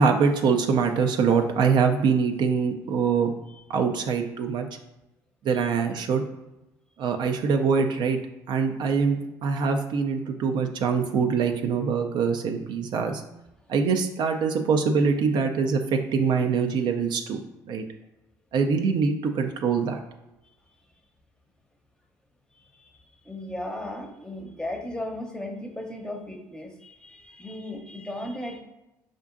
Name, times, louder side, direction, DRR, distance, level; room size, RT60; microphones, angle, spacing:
voice 1, 0.0-3.3 3.7-4.7 5.4-6.2 7.0-8.2 8.5-13.2 13.7-17.4 17.7-17.8 18.5-20.0, right 5 dB, 55° right, 4 dB, 0.3 m, -24 dB
voice 2, 23.2-28.6, left 1 dB, 10° left, 3 dB, 0.7 m, -36 dB
4.3 x 2.5 x 2.5 m, 0.95 s
hypercardioid pair, 60°, 9 cm